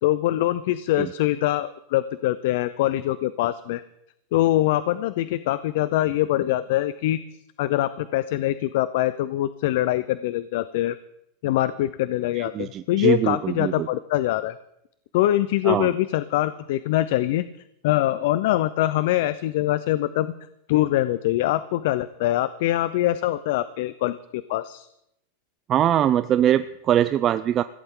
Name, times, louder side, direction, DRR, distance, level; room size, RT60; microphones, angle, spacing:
voice 1, 0.0-3.8 4.3-7.2 7.6-11.0 11.4-14.6 15.1-17.4 17.8-20.3 20.7-24.9, left 14 dB, 65° left, 15 dB, 0.6 m, -23 dB
voice 2, 12.4-13.9 15.6-15.9 25.7-27.6, right 11 dB, 30° right, 12 dB, 0.5 m, -22 dB
21.0 x 16.0 x 3.8 m, 0.79 s
supercardioid pair, 140°, 0 cm